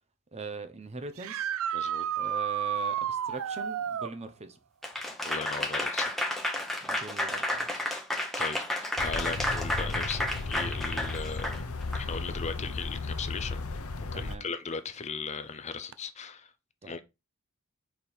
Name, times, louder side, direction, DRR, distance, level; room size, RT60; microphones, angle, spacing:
voice 1, 0.3-1.5 2.2-4.6 6.8-7.7 14.1-14.5 16.8-17.0, right 4 dB, 30° right, 0.8 m, -41 dB
sound 1, 1.2-4.1 7.5-7.6 9.6-9.7 15.9-16.0, right 9 dB, 65° right, 0.4 m, -31 dB
voice 2, 1.7-2.0 5.2-6.2 7.9-8.0 8.4-8.6 9.0-11.6 11.9-13.8 14.1-16.5 16.8-17.0, left 5 dB, 30° left, 0.5 m, -37 dB
Applause / Crowd, 4.8-12.0, left 1 dB, ahead, 1.0 m, -31 dB
sound 2, 9.0-14.4, left 3 dB, 70° left, 0.8 m, -35 dB
5.2 x 4.5 x 4.4 m
head